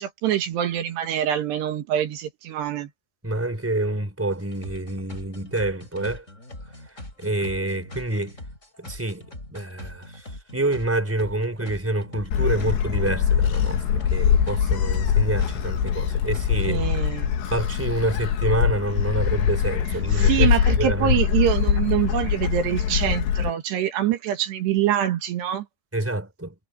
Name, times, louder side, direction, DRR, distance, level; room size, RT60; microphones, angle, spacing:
voice 1, 0.0-2.9 16.7-17.3 20.2-25.7, right 11 dB, 75° right, 3.8 m, -25 dB
voice 2, 3.2-6.2 7.2-8.4 8.8-9.2 9.5-10.2 10.5-16.9 17.5-20.5 20.8-21.1 25.9-26.5, right 2 dB, 5° right, 4.0 m, -27 dB
sound 1, 4.3-16.5, left 1 dB, 15° left, 6.7 m, -41 dB
Gull seagull, 12.3-23.5, left 8 dB, 80° left, 4.2 m, -23 dB
omnidirectional pair, 4.9 m